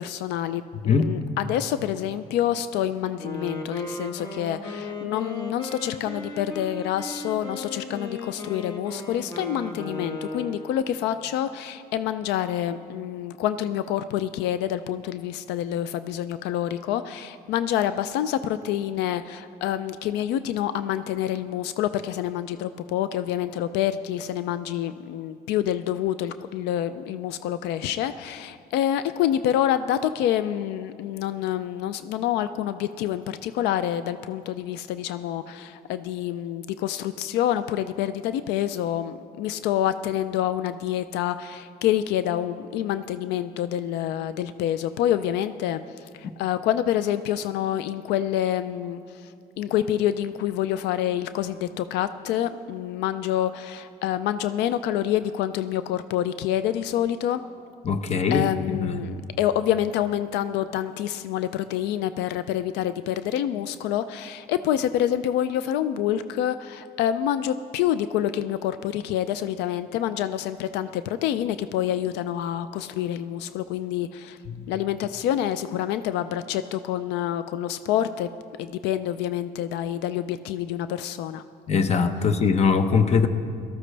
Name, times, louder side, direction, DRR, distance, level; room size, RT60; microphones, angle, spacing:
voice 1, 0.0-49.3 49.6-57.4 58.3-74.4 74.7-78.3 78.6-81.4, left 11 dB, 90° left, 12 dB, 0.4 m, -27 dB
Wind instrument woodwind instrument, 3.2-11.1, left 2 dB, 25° left, 1.3 m, -36 dB
voice 2, 57.8-58.9 74.5-74.6 81.7-83.3, left 5 dB, 40° left, 9 dB, 0.9 m, -22 dB
18.0 x 13.5 x 3.3 m, 2.4 s
cardioid pair, 110°, 17 cm